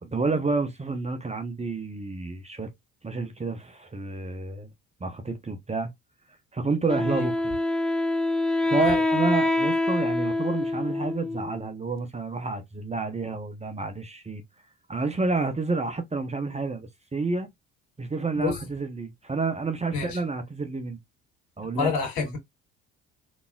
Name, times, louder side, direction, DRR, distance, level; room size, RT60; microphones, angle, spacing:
voice 1, 0.0-2.7 3.0-4.7 5.0-5.9 6.5-7.5 8.6-14.4 14.9-17.5 18.0-21.0 21.6-21.9, right 3 dB, 15° right, 0.9 m, -29 dB
Wind instrument woodwind instrument, 6.9-11.7, left 2 dB, ahead, 0.4 m, -25 dB
voice 2, 21.8-22.4, left 5 dB, 65° left, 2.5 m, -28 dB
4.0 x 3.4 x 2.4 m
figure-of-eight pair, 50°, 38 cm